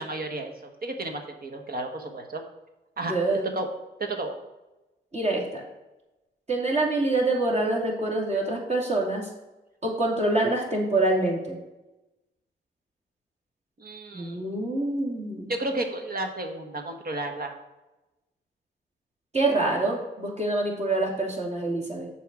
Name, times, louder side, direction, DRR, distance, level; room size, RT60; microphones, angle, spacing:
voice 1, 0.0-2.4 3.0-3.1 3.5-3.7 4.0-4.3 13.8-14.5 15.5-17.5, right 2 dB, 50° right, 4 dB, 1.3 m, -32 dB
voice 2, 3.1-3.5 5.1-5.6 6.5-9.3 9.8-11.6 14.1-15.5 19.3-22.1, right 2 dB, 35° right, -1 dB, 2.7 m, -26 dB
7.0 x 4.7 x 6.1 m, 1.0 s
cardioid pair, 65°, 19 cm